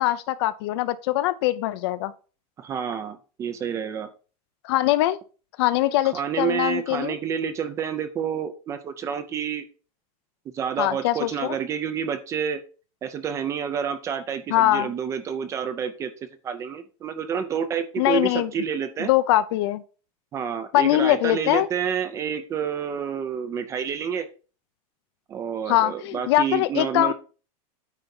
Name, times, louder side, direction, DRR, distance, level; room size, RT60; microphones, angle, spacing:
voice 1, 0.0-2.1 4.6-5.2 5.6-7.2 10.8-11.6 14.5-14.9 18.0-18.5 19.1-19.8 20.7-21.7 25.7-27.1, left 15 dB, 45° left, 0.5 m, -22 dB
voice 2, 2.6-4.1 6.1-9.7 10.5-12.6 13.0-19.1 20.3-24.3 25.3-27.1, right 7 dB, 15° right, 0.5 m, -29 dB
9.1 x 3.4 x 5.4 m
supercardioid pair, 170°, 19 cm